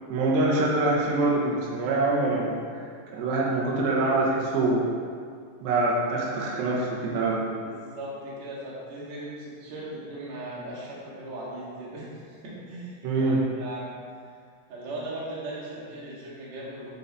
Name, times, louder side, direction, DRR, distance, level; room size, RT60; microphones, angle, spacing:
voice 1, 0.1-2.9 3.1-4.9 5.6-7.5 13.0-13.4, right 2 dB, 75° right, -4 dB, 3.2 m, -25 dB
voice 2, 7.6-13.9 14.7-16.9, right 1 dB, 50° right, -6 dB, 2.3 m, -38 dB
10.0 x 5.0 x 4.1 m, 2.1 s
omnidirectional pair, 5.3 m